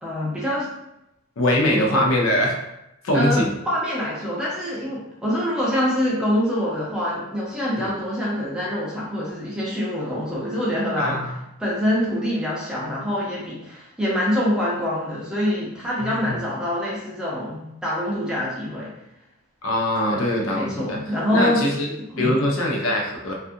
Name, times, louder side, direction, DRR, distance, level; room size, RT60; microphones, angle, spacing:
voice 1, 0.0-0.7 1.7-2.0 3.1-11.2 11.6-18.9 20.1-20.2 20.5-21.6 22.1-22.4, equal, 5° right, -7 dB, 0.6 m, -25 dB
voice 2, 1.4-2.6 3.0-3.5 7.8-7.9 11.0-11.3 16.0-16.4 19.6-21.0 21.3-23.3, left 1 dB, 75° left, -1 dB, 0.6 m, -22 dB
2.5 x 2.4 x 2.6 m, 0.86 s
head